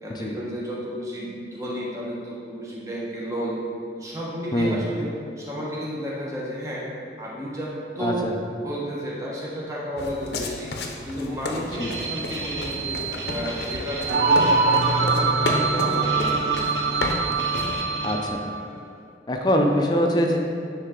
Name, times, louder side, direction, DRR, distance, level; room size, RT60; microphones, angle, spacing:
voice 1, 0.0-3.6 4.0-5.1 5.4-6.9 7.2-8.3 8.6-10.7 11.1-16.9, equal, 20° right, -5 dB, 1.0 m, -32 dB
voice 2, 8.0-8.3 11.7-11.9 18.0-18.4 19.3-20.4, equal, 25° left, 2 dB, 0.5 m, -23 dB
sound 1, 10.0-17.8, left 2 dB, 70° left, 0.6 m, -32 dB
sound 2, 11.7-18.2, right 5 dB, 85° right, 0.9 m, -33 dB
sound 3, 14.1-18.7, right 3 dB, 65° right, 0.5 m, -23 dB
9.4 x 3.3 x 3.7 m, 2.5 s
head